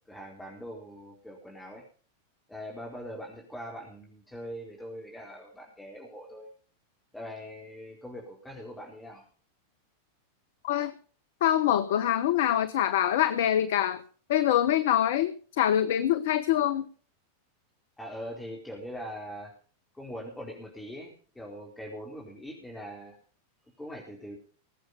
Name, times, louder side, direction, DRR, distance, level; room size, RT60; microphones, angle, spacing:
voice 1, 0.1-1.8 2.5-6.5 7.1-9.3 18.0-19.5 19.9-23.2 23.8-24.4, equal, 5° left, -2 dB, 4.3 m, -42 dB
voice 2, 11.4-14.0 14.3-16.8, left 11 dB, 55° left, 14 dB, 1.0 m, -25 dB
21.0 x 8.0 x 5.5 m, 0.41 s
figure-of-eight pair, 90°, 0 cm